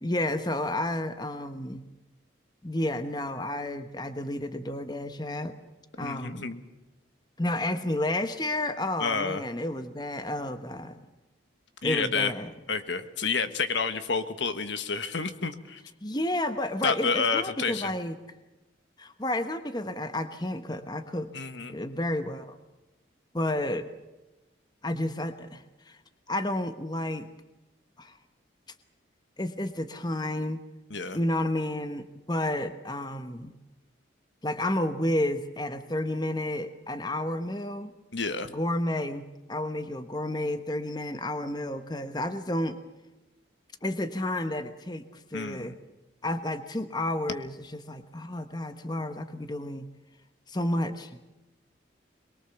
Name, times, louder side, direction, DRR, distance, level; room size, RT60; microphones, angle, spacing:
voice 1, 0.0-1.8 2.6-5.6 6.0-6.5 7.4-11.0 11.8-12.5 16.0-18.1 19.0-21.3 21.7-22.6 23.3-23.9 24.8-26.0 26.3-27.3 28.0-28.2 29.4-30.6 31.1-33.5 34.4-37.9 38.4-42.8 43.8-45.7 46.2-49.9 50.5-51.2, left 1 dB, 20° left, 9 dB, 1.1 m, -31 dB
voice 2, 6.0-6.6 9.0-9.4 11.8-12.3 12.7-15.8 16.8-17.9 21.3-21.8 30.9-31.2 38.1-38.5 45.3-45.7, left 5 dB, 70° left, 10 dB, 1.5 m, -29 dB
23.0 x 22.5 x 7.1 m, 1.0 s
head